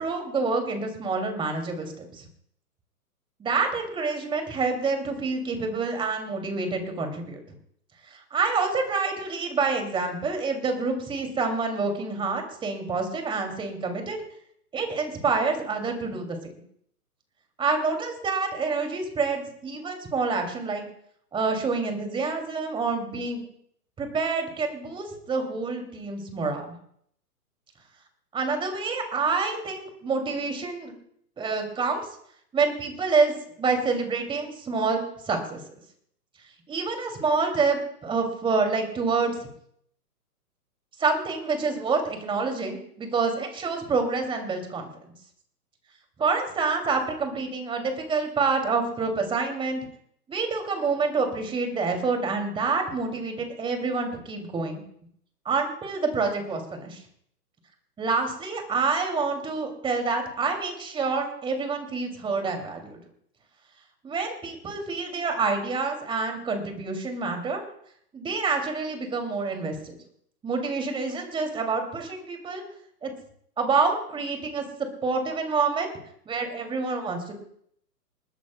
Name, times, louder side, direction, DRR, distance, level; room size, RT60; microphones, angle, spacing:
voice 1, 0.0-2.2 3.4-7.4 8.1-14.2 14.7-16.4 17.6-20.8 21.3-23.4 24.0-26.6 28.3-30.9 31.4-32.1 32.5-35.0 35.3-35.6 36.7-39.5 41.0-44.9 46.2-49.9 50.3-54.8 55.4-57.0 58.0-63.0 64.0-67.6 68.1-70.0 70.4-72.6 73.0-73.1 73.6-74.6 75.0-75.9 76.3-77.3, right 4 dB, 10° right, 4 dB, 2.5 m, -27 dB
28.5 x 11.0 x 2.2 m, 0.68 s
figure-of-eight pair, 125°, 47 cm